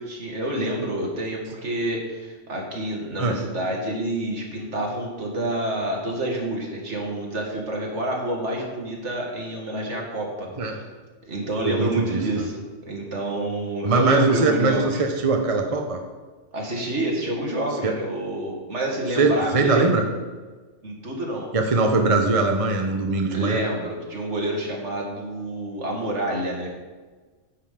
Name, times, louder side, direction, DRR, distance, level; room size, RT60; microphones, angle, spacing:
voice 1, 0.0-10.8 11.2-15.0 16.5-20.0 20.8-21.5 23.3-26.7, right 1 dB, 65° right, -1 dB, 2.3 m, -28 dB
voice 2, 11.6-12.4 13.8-16.0 17.8-17.9 19.2-20.0 21.5-23.6, right 3 dB, 30° right, 3 dB, 0.8 m, -21 dB
9.9 x 5.7 x 6.8 m, 1.3 s
omnidirectional pair, 1.3 m